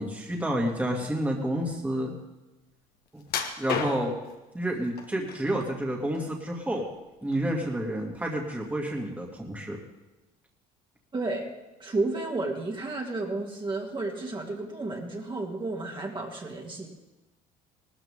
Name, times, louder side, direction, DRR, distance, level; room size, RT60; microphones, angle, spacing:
voice 1, 0.0-2.1 3.1-3.2 3.6-4.1 4.5-6.9 7.2-9.8, right 1 dB, 10° right, -1 dB, 2.5 m, -29 dB
sound 1, 3.3-4.3 5.0-5.6 6.0-7.0 7.3-7.5 8.0-8.1, left 7 dB, 65° left, 1.7 m, -33 dB
voice 2, 11.1-11.5 11.8-16.9, right 2 dB, 25° right, 0 dB, 2.6 m, -32 dB
18.5 x 13.5 x 3.8 m, 1.1 s
supercardioid pair, 85°, 17 cm